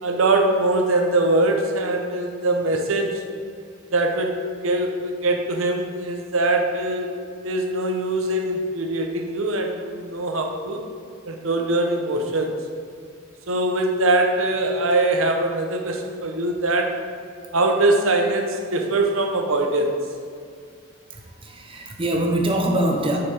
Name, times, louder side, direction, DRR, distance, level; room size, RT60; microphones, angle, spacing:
voice 1, 0.0-3.2 3.9-7.1 7.4-10.8 11.3-12.6 13.5-17.0 17.5-19.9, right 2 dB, 75° right, 3 dB, 0.8 m, -22 dB
voice 2, 21.1-23.2, right 1 dB, 25° right, 1 dB, 0.7 m, -23 dB
6.8 x 5.6 x 3.4 m, 2.3 s
head